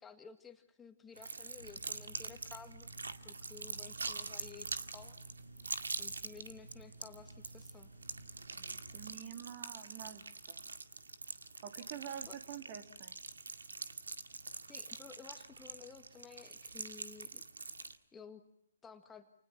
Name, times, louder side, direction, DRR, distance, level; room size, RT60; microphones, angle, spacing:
voice 1, 0.0-2.9 3.2-5.2 6.0-7.9 12.3-12.4 14.7-17.4 18.1-18.4 18.8-19.3, left 6 dB, 10° left, 6 dB, 1.9 m, -54 dB
sound 1, 1.2-18.0, right 4 dB, 70° right, 2.0 m, -45 dB
sound 2, 1.6-9.1, right 2 dB, 90° right, 7.2 m, -55 dB
voice 2, 8.5-10.6 11.6-13.2, right 9 dB, 35° right, 6 dB, 3.2 m, -48 dB
29.5 x 29.5 x 5.9 m, 0.74 s
figure-of-eight pair, 130°, 0 cm